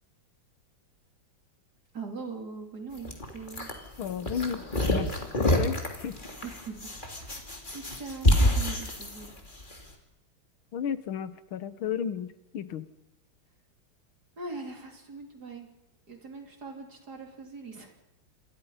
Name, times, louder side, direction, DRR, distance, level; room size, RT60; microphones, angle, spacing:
voice 1, 1.9-3.7 6.4-7.3 7.7-9.4 14.4-15.7 16.1-17.9, right 4 dB, 50° right, 3 dB, 3.8 m, -41 dB
sound 1, 3.0-9.8, left 1 dB, 25° left, 3.2 m, -28 dB
voice 2, 4.0-5.1 5.5-6.2 10.7-12.9, left 8 dB, 80° left, 14 dB, 1.9 m, -33 dB
28.0 x 22.0 x 5.7 m, 0.89 s
omnidirectional pair, 2.2 m